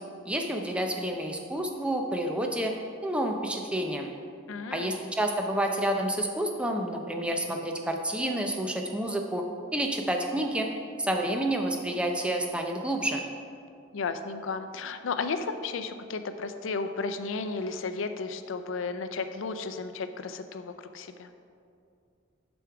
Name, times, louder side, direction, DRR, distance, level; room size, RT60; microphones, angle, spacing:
voice 1, 0.3-2.7 3.0-4.1 4.7-9.4 9.7-10.7 11.0-13.2, right 1 dB, 5° right, 2 dB, 0.5 m, -29 dB
voice 2, 4.5-4.9 13.9-21.3, left 4 dB, 80° left, 9 dB, 0.5 m, -33 dB
6.9 x 6.2 x 4.6 m, 2.5 s
head